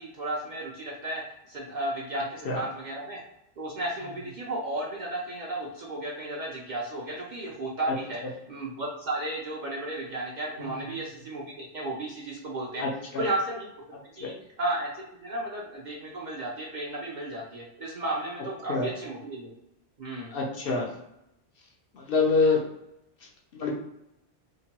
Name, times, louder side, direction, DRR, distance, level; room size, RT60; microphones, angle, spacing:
voice 1, 0.0-3.2 3.6-8.2 8.5-12.8 13.2-13.7 14.2-19.5 20.0-20.3, right 1 dB, 55° right, -3 dB, 0.6 m, -34 dB
voice 2, 12.8-13.2 14.2-14.3 18.7-18.9 20.3-20.9 21.9-22.7 23.5-23.7, left 4 dB, 65° left, -1 dB, 0.7 m, -26 dB
2.9 x 2.1 x 2.8 m, 0.84 s
omnidirectional pair, 1.2 m